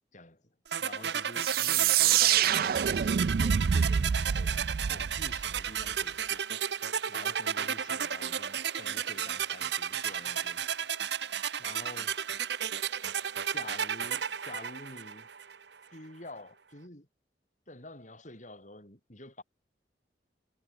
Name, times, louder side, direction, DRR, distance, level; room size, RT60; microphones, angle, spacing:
voice 1, 0.1-0.4 0.8-6.5 7.1-10.6 11.6-12.2 13.5-15.3 15.9-17.1 17.7-19.4, left 2 dB, 45° left, 7.8 m, -48 dB
sound 1, 0.7-15.6, right 8 dB, 70° right, 1.0 m, -33 dB
sound 2, 1.4-5.9, right 8 dB, 55° right, 0.4 m, -27 dB
head